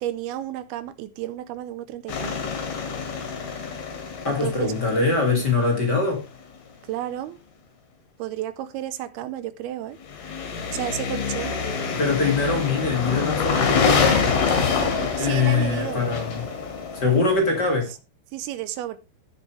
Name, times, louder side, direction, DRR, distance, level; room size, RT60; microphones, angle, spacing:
voice 1, 0.0-2.4 4.3-4.7 6.9-7.4 8.2-10.0 10.7-11.5 15.2-16.0 18.3-19.0, right 12 dB, 80° right, 2.4 m, -32 dB
sound 1, 2.1-5.9 10.1-17.8, left 5 dB, 65° left, 4.2 m, -26 dB
voice 2, 4.2-6.2 11.9-14.2 15.1-16.5 16.9-17.9, left 4 dB, 35° left, 1.9 m, -23 dB
16.5 x 7.3 x 3.2 m
omnidirectional pair, 4.9 m